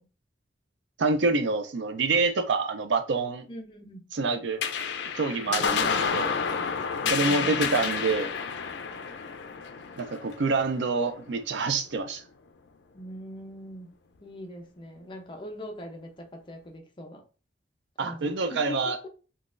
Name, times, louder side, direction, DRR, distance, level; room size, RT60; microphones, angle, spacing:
voice 1, 1.0-3.5 4.1-4.6 5.1-6.3 7.1-8.3 10.0-12.2 18.0-19.0, right 3 dB, 80° right, 0.5 m, -27 dB
voice 2, 3.5-4.2 5.5-6.3 7.0-7.6 12.9-13.9 14.2-17.2 18.0-19.0, equal, 25° left, 0.6 m, -42 dB
sound 1, 4.6-11.4, left 6 dB, 75° left, 0.4 m, -30 dB
3.8 x 2.3 x 2.5 m
head